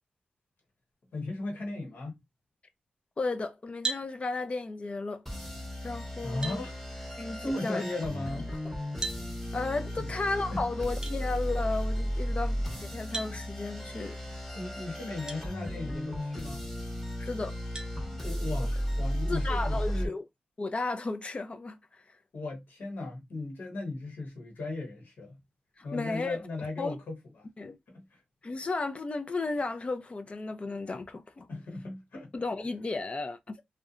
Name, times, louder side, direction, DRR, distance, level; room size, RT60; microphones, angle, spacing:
voice 1, 1.1-2.2 6.2-6.8 7.4-8.5 10.0-10.1 10.5-10.6 14.5-16.7 18.2-20.1 22.3-25.4 25.8-27.4 27.9-28.2 31.5-32.3, left 2 dB, 80° left, 1.0 m, -37 dB
voice 2, 3.2-5.2 5.8-6.6 7.2-7.8 9.5-14.2 17.2-17.6 19.3-20.2 20.6-21.8 25.8-26.4 26.8-27.0 27.6-27.8 28.4-31.5 32.3-33.6, left 3 dB, 40° left, 0.4 m, -34 dB
sound 1, 3.8-4.1 5.8-5.9 6.4-6.6 9.0-9.2 11.0-11.2 13.1-13.4 15.3-15.4 16.1-16.2 17.7-17.9, right 3 dB, 20° right, 0.6 m, -35 dB
sound 2, 5.3-20.1, equal, 5° left, 0.9 m, -34 dB
2.7 x 2.1 x 2.4 m
wide cardioid pair, 90°, 3 cm